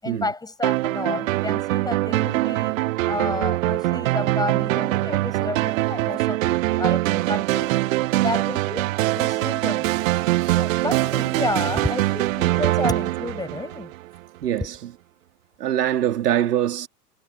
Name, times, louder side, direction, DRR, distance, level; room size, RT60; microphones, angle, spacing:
voice 1, 0.0-2.7 3.1-7.7 8.2-9.9 10.5-13.9, left 3 dB, 10° left, 7.7 m, -31 dB
sound 1, 0.6-14.2, right 17 dB, 55° right, 0.9 m, -23 dB
voice 2, 14.4-14.9 15.6-16.9, right 11 dB, 70° right, 3.0 m, -24 dB
hypercardioid pair, 105°, 49 cm